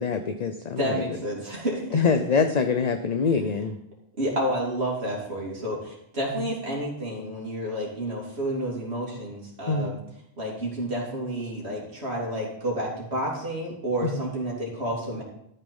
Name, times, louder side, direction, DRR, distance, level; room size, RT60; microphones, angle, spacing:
voice 1, 0.0-1.2 1.9-3.8 6.3-6.5 9.7-10.0 14.0-14.2, left 5 dB, 45° left, 7 dB, 0.7 m, -25 dB
voice 2, 0.8-2.0 4.2-10.0 10.4-15.2, right 1 dB, 90° right, -4 dB, 3.2 m, -30 dB
13.0 x 6.6 x 5.4 m, 0.75 s
omnidirectional pair, 1.1 m